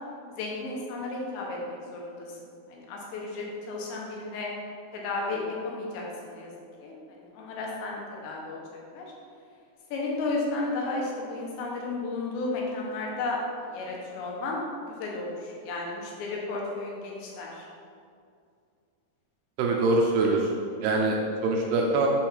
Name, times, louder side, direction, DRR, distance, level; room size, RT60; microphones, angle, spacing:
voice 1, 0.3-2.4 2.7-4.5 4.9-6.5 6.8-8.6 8.9-9.1 9.9-13.4 13.7-17.7, left 3 dB, 75° left, -2 dB, 3.4 m, -33 dB
voice 2, 19.6-20.5 20.8-22.1, right 3 dB, 80° right, 0 dB, 2.4 m, -24 dB
8.1 x 4.3 x 5.8 m, 2.3 s
omnidirectional pair, 5.2 m